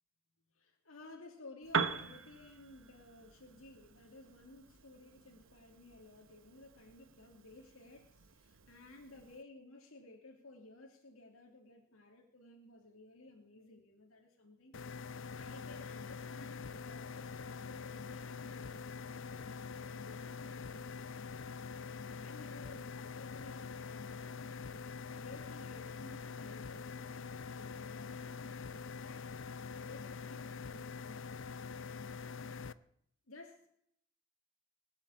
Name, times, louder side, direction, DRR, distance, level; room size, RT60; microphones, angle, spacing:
voice 1, 0.5-24.4 25.1-31.3 33.3-33.7, left 2 dB, 80° left, 1 dB, 2.5 m, -56 dB
Piano, 1.6-9.4, right 5 dB, 65° right, 1.0 m, -43 dB
sound 1, 14.7-32.7, left 5 dB, 60° left, 0.6 m, -45 dB
20.0 x 7.6 x 8.4 m, 0.69 s
head